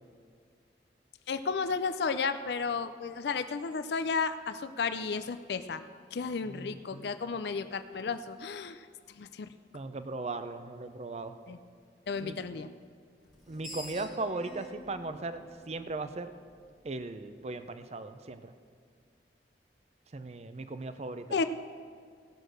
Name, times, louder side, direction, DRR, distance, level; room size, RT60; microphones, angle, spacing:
voice 1, 1.3-5.8 6.1-8.8 9.2-9.5 11.5-11.6 12.1-12.7 21.3-21.4, left 5 dB, 65° left, 11 dB, 0.4 m, -33 dB
voice 2, 6.4-7.1 9.7-11.4 12.2-12.4 13.5-16.3 16.8-18.5 20.1-21.3, right 3 dB, 35° right, 10 dB, 0.5 m, -38 dB
Screech, 13.3-16.5, left 1 dB, ahead, 1.8 m, -47 dB
17.5 x 6.4 x 6.4 m, 2.1 s
head